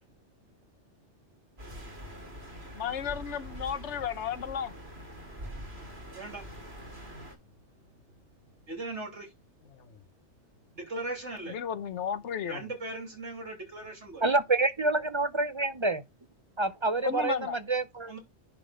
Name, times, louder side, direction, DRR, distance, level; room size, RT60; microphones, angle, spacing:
sound 1, 1.6-7.4, equal, 60° right, 2.8 m, -44 dB
voice 1, 2.7-4.7 9.7-9.9 11.4-12.7 17.0-17.6, left 8 dB, 75° left, 1.2 m, -33 dB
voice 2, 8.7-9.3 10.7-11.5 12.5-14.2 18.1-18.2, right 2 dB, 90° right, 3.4 m, -38 dB
voice 3, 14.2-16.0 16.6-18.1, right 3 dB, 35° right, 0.5 m, -27 dB
10.5 x 3.6 x 5.0 m
omnidirectional pair, 1.2 m